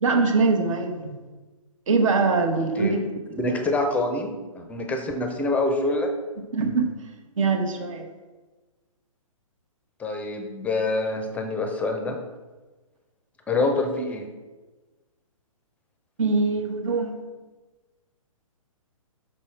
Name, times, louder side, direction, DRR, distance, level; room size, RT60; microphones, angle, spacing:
voice 1, 0.0-1.2 1.9-3.0 6.5-6.9 7.4-8.1 16.2-17.2, right 4 dB, 65° right, 5 dB, 1.1 m, -22 dB
voice 2, 3.4-6.1 10.0-12.2 13.5-14.3, left 2 dB, 10° left, 4 dB, 0.5 m, -26 dB
5.5 x 5.4 x 3.3 m, 1.2 s
hypercardioid pair, 135°, 18 cm